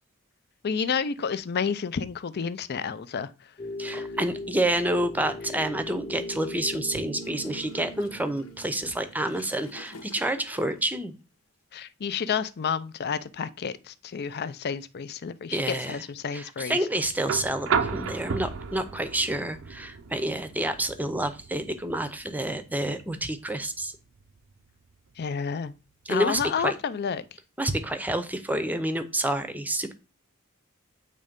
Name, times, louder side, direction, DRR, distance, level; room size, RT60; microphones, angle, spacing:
voice 1, 0.6-3.3 3.9-4.1 11.7-16.8 25.2-25.7 26.1-27.2, left 6 dB, 50° left, 0.5 m, -30 dB
sound 1, 3.6-9.7, left 1 dB, 30° left, 1.0 m, -39 dB
voice 2, 3.8-11.1 15.5-16.0 16.3-23.9 26.1-26.8 27.6-29.9, right 1 dB, 10° right, 0.7 m, -28 dB
Gurgling / Toilet flush, 7.2-10.9, left 3 dB, 80° left, 1.1 m, -49 dB
sound 2, 17.2-25.2 26.7-26.8, right 6 dB, 65° right, 0.6 m, -34 dB
8.4 x 3.2 x 5.2 m
head